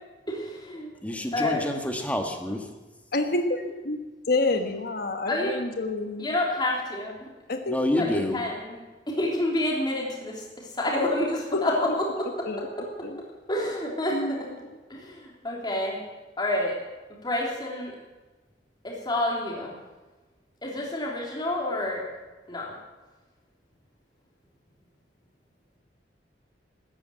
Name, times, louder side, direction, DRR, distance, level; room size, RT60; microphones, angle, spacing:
voice 1, 0.3-0.9 1.3-1.6 5.3-5.5 6.2-7.3 8.0-8.8 9.1-10.4 10.8-12.0 13.5-14.5 14.9-16.0 16.4-16.7 17.2-17.9 18.8-19.7 20.6-22.0 22.5-22.7, left 1 dB, 25° left, -3 dB, 3.3 m, -28 dB
voice 2, 1.0-2.6 7.7-8.4, left 1 dB, 10° left, 4 dB, 1.7 m, -28 dB
voice 3, 3.1-4.0 4.3-6.3 7.5-8.4 11.5-11.9 12.4-13.2 14.1-14.5, left 2 dB, 60° left, 6 dB, 1.3 m, -29 dB
14.0 x 10.0 x 9.1 m, 1.2 s
head